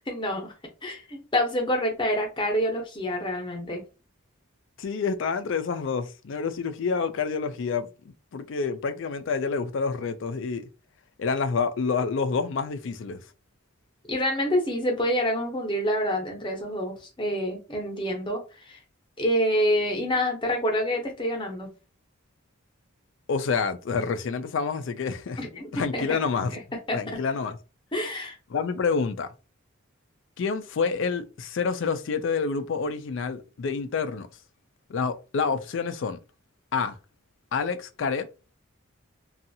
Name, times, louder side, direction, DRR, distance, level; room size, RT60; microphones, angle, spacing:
voice 1, 0.1-0.5 0.8-3.8 14.1-18.8 19.2-21.7 25.4-26.1 26.5-26.6 26.9-27.0 27.9-28.4, equal, 25° left, 0.8 m, -27 dB
voice 2, 4.8-7.9 8.3-10.7 11.2-13.2 23.3-25.4 25.7-26.5 26.9-27.6 28.5-29.3 30.4-34.3 34.9-36.2 36.7-37.0 37.5-38.3, left 5 dB, 60° left, 0.4 m, -28 dB
2.6 x 2.4 x 2.7 m
head